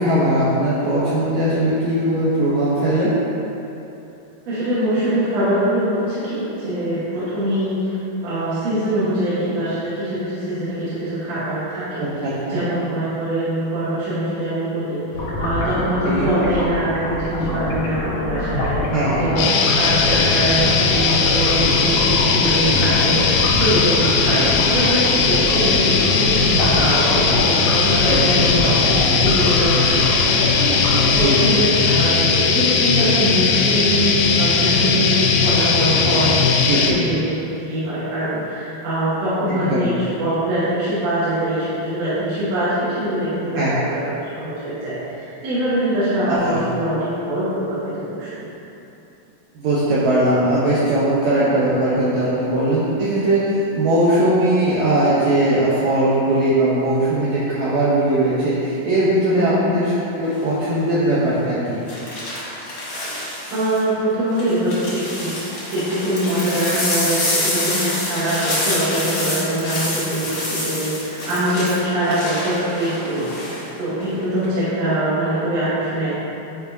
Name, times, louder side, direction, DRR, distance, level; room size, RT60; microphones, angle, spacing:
voice 1, 0.0-3.1 12.0-12.6 16.1-16.3 18.9-19.2 24.4-24.5 28.0-28.5 31.1-31.6 36.7-37.0 39.5-39.9 43.6-43.7 46.3-46.6 49.5-61.8, right 1 dB, 85° right, -9 dB, 1.5 m, -19 dB
voice 2, 4.5-18.8 19.2-30.2 30.5-37.3 37.6-48.5 59.3-59.7 63.5-65.4 65.7-76.2, right 1 dB, 60° right, -12 dB, 2.0 m, -23 dB
sound 1, 15.1-31.6, left 1 dB, 65° left, 1.5 m, -25 dB
sound 2, 19.4-36.9, left 5 dB, 80° left, 2.3 m, -18 dB
sound 3, 60.2-60.6 61.9-63.8 64.3-73.6 74.0-74.4, left 1 dB, 50° left, 1.3 m, -27 dB
9.8 x 4.6 x 2.7 m, 2.9 s
omnidirectional pair, 4.4 m